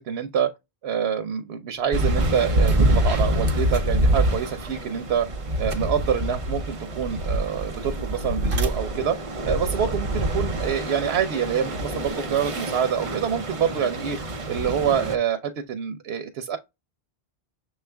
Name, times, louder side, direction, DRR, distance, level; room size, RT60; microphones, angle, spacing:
voice 1, 0.1-0.5 0.8-5.3 5.6-9.2 9.5-14.2 14.5-16.6, right 8 dB, 85° right, 0.9 m, -26 dB
sound 1, 1.9-15.2, right 1 dB, 35° right, 0.7 m, -26 dB
sound 2, 2.5-10.7, right 1 dB, 65° right, 1.0 m, -33 dB
6.6 x 2.4 x 3.3 m
omnidirectional pair, 1.0 m